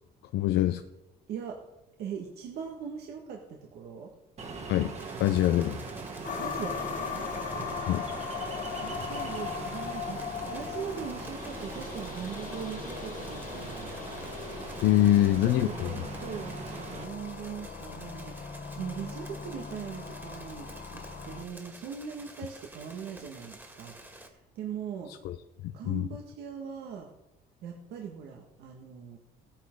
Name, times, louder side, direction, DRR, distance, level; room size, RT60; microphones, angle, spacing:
voice 1, 0.3-0.8 4.7-4.9 5.2-5.8 7.9-8.0 14.8-15.9 25.2-25.4 25.6-26.1, left 13 dB, 80° left, 8 dB, 0.7 m, -24 dB
voice 2, 1.3-1.6 2.0-4.1 6.3-7.3 8.8-14.0 15.1-25.1 25.7-27.1 27.6-29.2, right 7 dB, 75° right, 1 dB, 1.7 m, -41 dB
Ocean, 4.4-17.0, right 4 dB, 40° right, 2.3 m, -41 dB
sound 1, 4.9-24.3, right 1 dB, 10° right, 2.2 m, -50 dB
sound 2, 6.2-21.4, left 6 dB, 50° left, 1.5 m, -39 dB
16.5 x 9.9 x 3.8 m, 0.91 s
cardioid pair, 110°, 17 cm